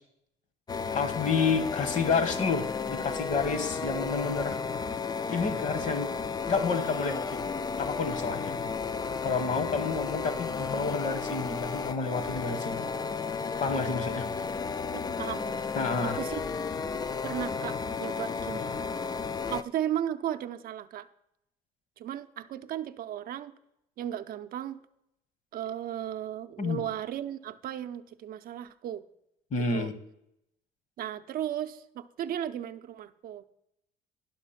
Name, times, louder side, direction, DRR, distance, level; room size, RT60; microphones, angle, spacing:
sound 1, 0.7-19.6, left 5 dB, 25° left, 0.3 m, -33 dB
voice 1, 0.9-4.6 5.3-6.1 6.5-7.4 7.8-8.5 9.2-12.9 13.6-14.3 15.7-16.2 26.6-26.8 29.5-29.9, left 4 dB, 45° left, 11 dB, 1.1 m, -30 dB
voice 2, 14.9-15.7 16.0-16.4 17.2-18.7 19.5-21.1 22.0-23.6 24.0-24.8 25.5-29.1 29.7-29.9 31.0-33.4, right 11 dB, 60° right, 10 dB, 0.5 m, -35 dB
11.0 x 6.1 x 5.7 m, 0.81 s
cardioid pair, 110°, 17 cm